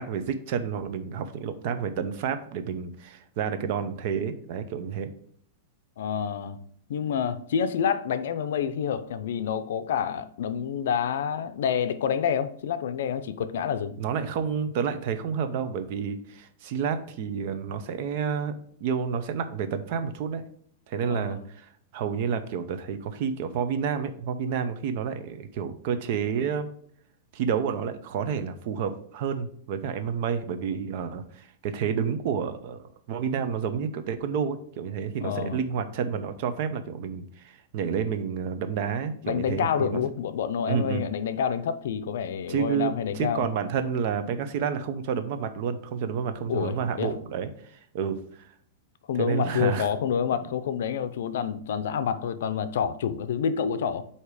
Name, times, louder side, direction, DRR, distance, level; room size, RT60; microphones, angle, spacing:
voice 1, 0.0-5.1 14.0-18.6 18.8-20.4 20.9-26.7 27.3-40.0 40.7-41.0 42.5-48.5 49.2-49.9, right 7 dB, 45° right, 0.7 m, -30 dB
voice 2, 6.0-6.6 6.9-13.9 21.0-21.4 35.2-35.6 39.2-43.5 46.5-47.1 49.1-54.0, left 8 dB, 75° left, 0.5 m, -28 dB
8.1 x 2.9 x 4.8 m
supercardioid pair, 165°, 0 cm